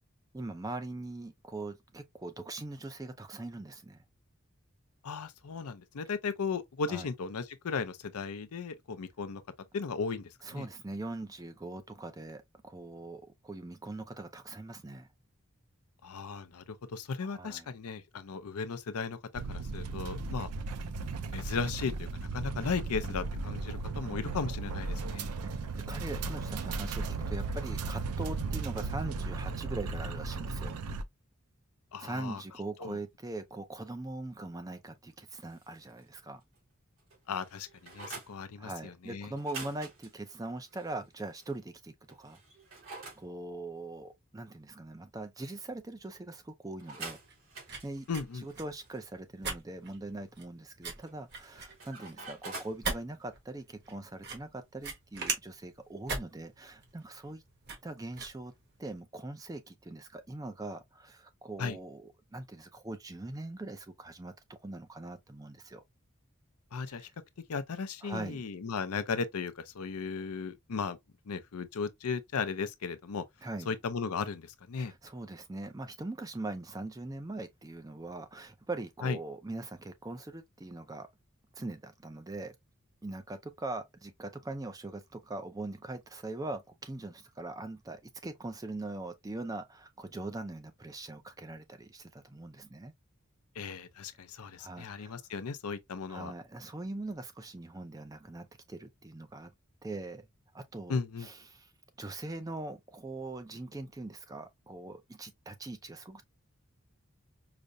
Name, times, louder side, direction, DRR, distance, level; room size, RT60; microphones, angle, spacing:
voice 1, 0.3-4.0 6.9-7.1 10.4-15.1 17.2-17.7 23.0-23.3 25.4-30.8 32.0-36.4 38.0-38.1 38.6-42.4 43.2-47.2 47.8-48.1 48.4-57.4 57.8-58.5 58.8-65.8 66.8-67.1 68.0-68.4 73.4-73.7 74.8-81.1 81.5-82.5 83.0-92.9 94.6-95.1 96.1-99.5 99.8-100.2 100.5-101.7 102.0-106.2, right 2 dB, 15° right, 0.4 m, -42 dB
voice 2, 5.0-9.4 9.7-10.7 16.0-16.6 16.9-19.2 19.5-20.5 21.2-25.3 31.9-32.4 32.8-33.0 37.3-39.3 48.1-48.4 61.6-61.8 66.7-67.1 67.5-71.0 71.3-73.2 73.7-74.9 79.0-79.2 93.6-96.3 100.9-101.3, left 5 dB, 80° left, 0.5 m, -36 dB
sound 1, 19.3-31.0, right 4 dB, 90° right, 0.5 m, -36 dB
sound 2, 35.3-36.2 36.5-36.6 37.0-38.3 39.3-41.5 42.1-43.2 46.8-49.1 51.0-52.8, right 3 dB, 65° right, 2.4 m, -47 dB
sound 3, 46.9-59.0, right 3 dB, 50° right, 1.3 m, -41 dB
4.9 x 2.1 x 2.5 m
head